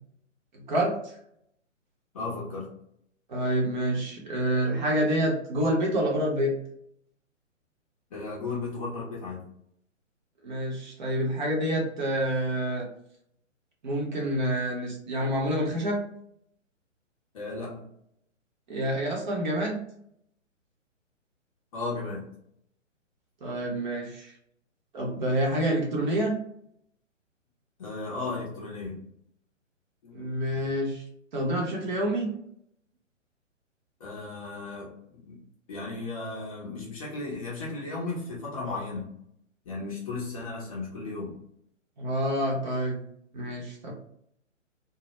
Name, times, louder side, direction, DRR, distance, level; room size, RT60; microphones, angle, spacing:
voice 1, 0.5-1.1 3.3-6.6 10.4-12.8 13.8-16.1 18.7-19.8 23.4-24.3 24.9-26.4 30.1-31.0 31.3-32.3 42.0-43.0 43.3-43.9, right 1 dB, 35° right, -2 dB, 0.7 m, -27 dB
voice 2, 2.1-2.7 8.1-9.5 17.3-17.9 21.7-22.3 27.8-29.0 30.0-30.7 34.0-35.4 35.7-39.1 39.7-41.3, left 3 dB, 30° left, -4 dB, 0.6 m, -35 dB
2.2 x 2.1 x 2.8 m, 0.71 s
figure-of-eight pair, 130°, 38 cm